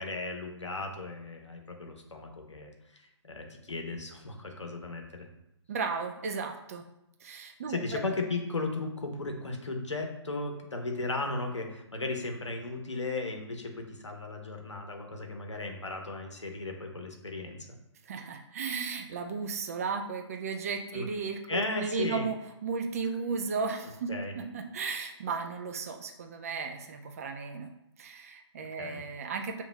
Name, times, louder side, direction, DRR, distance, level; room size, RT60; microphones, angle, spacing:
voice 1, 0.0-5.3 7.6-17.6 20.9-21.1 21.5-22.3 24.1-24.3 28.8-29.0, left 3 dB, 75° left, 3 dB, 0.9 m, -36 dB
voice 2, 5.7-6.8 7.2-8.0 18.0-24.1 24.4-27.7 28.0-29.6, right 5 dB, 30° right, 4 dB, 0.4 m, -35 dB
6.8 x 3.0 x 2.2 m, 0.85 s
figure-of-eight pair, 135°, 15 cm